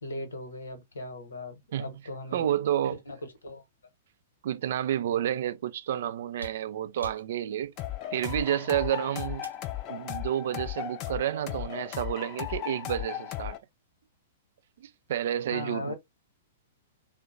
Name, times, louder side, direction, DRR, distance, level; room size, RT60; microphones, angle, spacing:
voice 1, 0.0-2.5 3.1-3.2 3.4-3.6 15.5-15.9, left 2 dB, 70° left, 1.0 m, -38 dB
voice 2, 2.3-3.0 4.4-7.7 8.1-9.5 9.9-13.6 14.8-15.9, right 11 dB, 55° right, 0.4 m, -30 dB
sound 1, 6.4-9.8 11.2-11.3, equal, 90° right, 0.8 m, -48 dB
sound 2, 7.8-13.6, left 13 dB, 35° left, 0.5 m, -36 dB
3.6 x 2.1 x 2.5 m
figure-of-eight pair, 105°, 0 cm